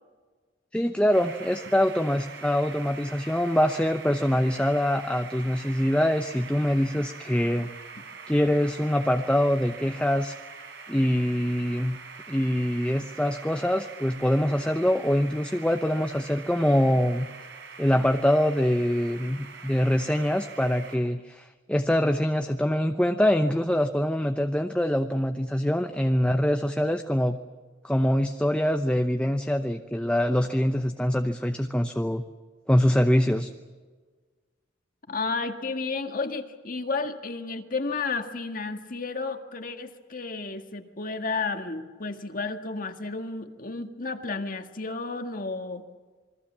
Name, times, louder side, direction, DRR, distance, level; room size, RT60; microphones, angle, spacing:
voice 1, 0.7-7.7 8.3-10.4 10.9-12.0 12.3-17.3 17.8-27.4 27.8-32.2 32.7-33.5, equal, 5° left, 6 dB, 0.8 m, -24 dB
sound 1, 1.1-21.0, right 5 dB, 65° right, 4.3 m, -44 dB
voice 2, 35.1-45.9, left 3 dB, 50° left, 6 dB, 1.8 m, -32 dB
27.5 x 21.5 x 7.4 m, 1.4 s
head